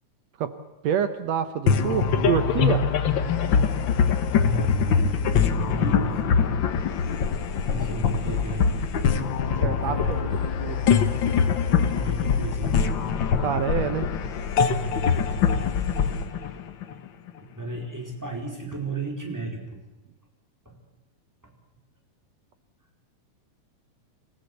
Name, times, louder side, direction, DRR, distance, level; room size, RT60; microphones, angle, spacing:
voice 1, 0.8-2.9 9.6-10.3 10.6-10.8 13.4-14.1, right 8 dB, 65° right, 11 dB, 1.8 m, -27 dB
sound 1, 1.7-17.3, left 6 dB, 80° left, 1.0 m, -23 dB
voice 2, 4.4-6.6 7.0-8.8 9.8-10.3 11.9-13.0 17.4-19.8 20.6-20.8, right 3 dB, 5° right, 1 dB, 4.2 m, -33 dB
27.0 x 16.0 x 8.1 m, 0.99 s
omnidirectional pair, 3.8 m